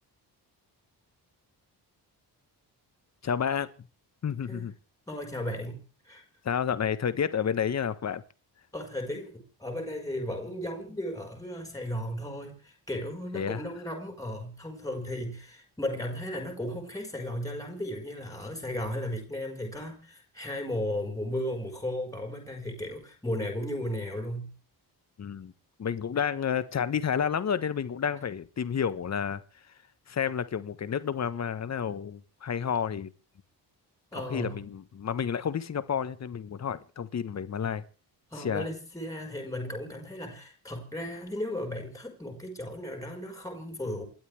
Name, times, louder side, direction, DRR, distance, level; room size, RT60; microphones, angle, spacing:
voice 1, 3.2-3.9 4.2-4.7 6.4-8.2 13.3-13.6 25.2-25.5 25.8-29.4 30.1-33.1 34.1-37.8 38.4-38.7, left 7 dB, 40° left, 1.3 m, -30 dB
voice 2, 5.1-6.2 8.7-24.5 34.1-34.6 38.3-44.1, left 1 dB, 10° left, 5.1 m, -35 dB
28.5 x 12.5 x 3.4 m
wide cardioid pair, 175°, 41 cm